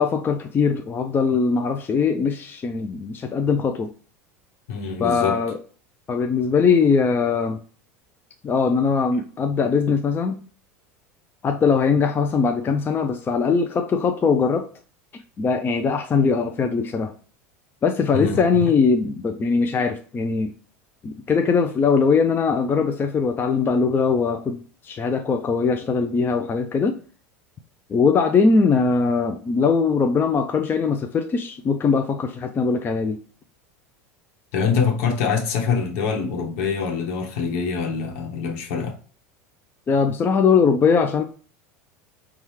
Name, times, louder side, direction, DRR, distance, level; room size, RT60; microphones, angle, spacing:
voice 1, 0.0-3.9 5.0-5.6 6.1-7.6 8.4-10.4 11.4-14.7 15.4-17.1 17.8-20.5 21.0-27.0 27.9-33.2 39.9-41.2, left 5 dB, 25° left, 0.5 m, -21 dB
voice 2, 4.7-5.4 18.1-18.4 34.5-39.0, left 5 dB, 65° left, 1.1 m, -24 dB
5.4 x 2.4 x 3.1 m
hypercardioid pair, 85°, 8 cm